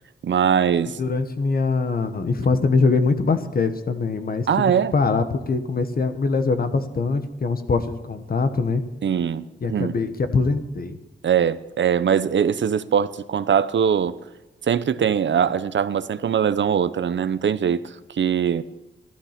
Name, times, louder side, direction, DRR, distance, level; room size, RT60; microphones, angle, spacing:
voice 1, 0.2-1.0 4.5-4.9 9.0-9.9 11.2-14.1 14.7-18.6, right 8 dB, 70° right, 0.7 m, -21 dB
voice 2, 1.0-8.8 9.6-11.0, left 4 dB, 50° left, 1.2 m, -23 dB
15.0 x 12.5 x 5.9 m
wide cardioid pair, 160°, 20 cm